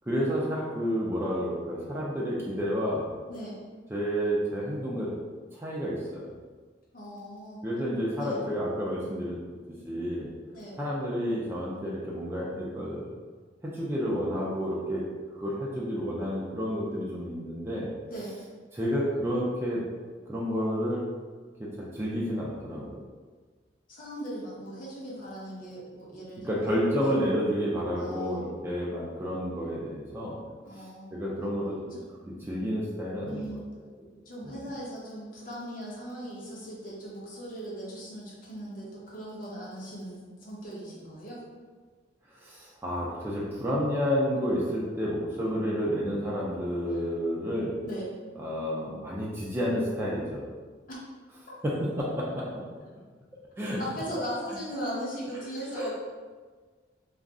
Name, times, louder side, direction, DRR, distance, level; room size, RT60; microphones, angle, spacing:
voice 1, 0.0-3.1 3.9-5.2 5.5-6.3 7.6-9.4 9.9-10.3 10.8-13.0 13.6-15.0 15.4-17.9 18.7-19.8 20.3-21.1 21.6-23.0 26.4-30.4 30.7-31.8 32.5-33.6 34.4-34.6 42.3-47.7 48.4-50.5 51.6-52.6 53.6-53.8 55.7-55.9, equal, 15° right, -6 dB, 0.4 m, -30 dB
voice 2, 6.9-7.6 8.2-8.4 10.5-10.8 18.1-18.4 23.9-27.1 27.9-28.4 30.6-31.1 31.9-32.0 33.2-33.7 34.3-41.4 46.9-47.1 47.8-48.1 50.9-51.0 51.5-51.6 53.8-55.9, equal, 50° left, -6 dB, 0.8 m, -39 dB
2.4 x 2.0 x 3.5 m, 1.4 s
head